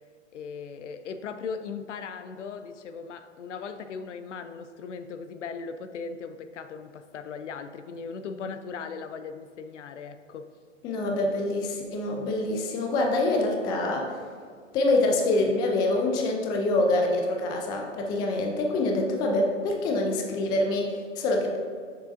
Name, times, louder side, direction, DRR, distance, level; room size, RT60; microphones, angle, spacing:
voice 1, 0.3-10.5, left 5 dB, 70° left, 10 dB, 0.6 m, -38 dB
voice 2, 10.8-14.2 14.7-21.6, left 2 dB, 10° left, 1 dB, 0.3 m, -25 dB
7.0 x 6.5 x 2.5 m, 2.1 s
hypercardioid pair, 115°, 37 cm